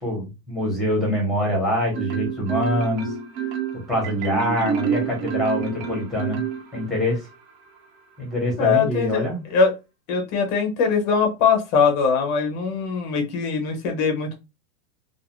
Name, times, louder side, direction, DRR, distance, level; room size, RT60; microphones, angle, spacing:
voice 1, 0.0-3.1 3.9-6.4 6.7-7.2 8.2-9.4, left 1 dB, ahead, -1 dB, 0.9 m, -24 dB
Marimba xylophone, 1.9-7.1, right 8 dB, 75° right, 1.0 m, -28 dB
voice 2, 8.6-9.2 9.5-9.7 10.1-14.3, left 5 dB, 25° left, 3 dB, 0.5 m, -21 dB
2.3 x 2.3 x 2.9 m, 0.26 s
supercardioid pair, 155°, 49 cm